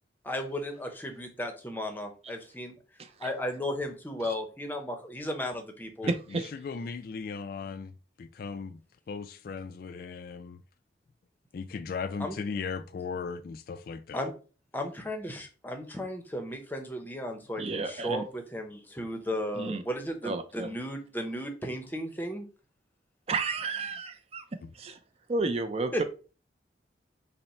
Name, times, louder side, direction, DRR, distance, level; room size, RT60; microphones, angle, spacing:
voice 1, 0.2-2.7 3.2-6.1 12.2-12.4 14.1-14.3 14.7-22.5 25.9-26.0, equal, 10° left, 0.7 m, -35 dB
voice 2, 3.0-3.3 4.2-4.3 6.1-6.5 17.6-18.2 19.6-19.8 20.2-20.7 23.3-24.4 24.7-25.0 25.3-26.0, right 3 dB, 35° right, 0.4 m, -32 dB
voice 3, 6.0-7.9 8.2-8.8 9.1-10.6 11.5-14.2 24.6-24.7, left 5 dB, 50° left, 0.3 m, -37 dB
5.5 x 2.1 x 4.2 m
head